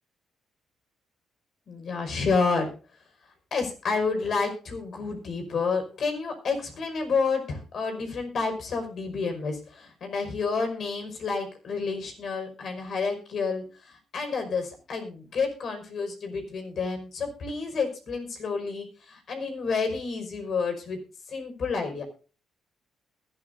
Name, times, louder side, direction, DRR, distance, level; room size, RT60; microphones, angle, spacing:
voice 1, 1.7-2.7 3.5-21.0 21.3-22.0, left 4 dB, 55° left, 5 dB, 5.4 m, -29 dB
21.0 x 12.5 x 2.7 m, 0.36 s
cardioid pair, 95°, 0 cm